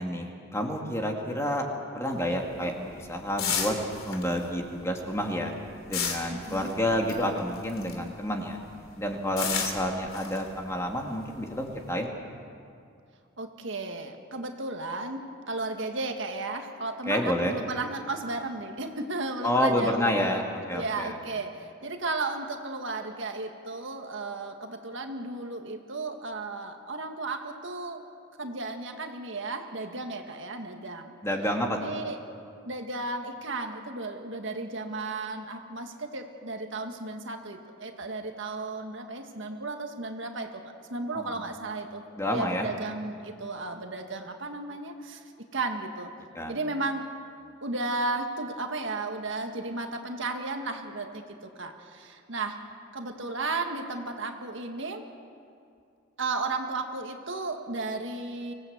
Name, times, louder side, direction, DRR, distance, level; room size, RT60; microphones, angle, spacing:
voice 1, 0.0-1.6 1.9-3.7 4.1-5.5 5.9-8.6 9.0-12.2 17.1-17.6 19.4-21.1 31.2-31.9 41.1-41.3 42.2-42.7 46.3-46.6, equal, 15° left, 1 dB, 2.2 m, -29 dB
sound 1, 2.1-8.2 8.5-11.9, left 6 dB, 80° left, 3.1 m, -34 dB
voice 2, 6.3-6.7 13.4-20.2 20.7-28.0 28.4-31.2 31.7-32.2 32.7-40.6 40.9-42.0 42.3-45.2 45.5-46.1 46.5-47.0 47.6-52.6 52.9-55.1 56.2-58.5, right 3 dB, 65° right, 4 dB, 1.8 m, -34 dB
25.0 x 17.5 x 8.1 m, 2.4 s
head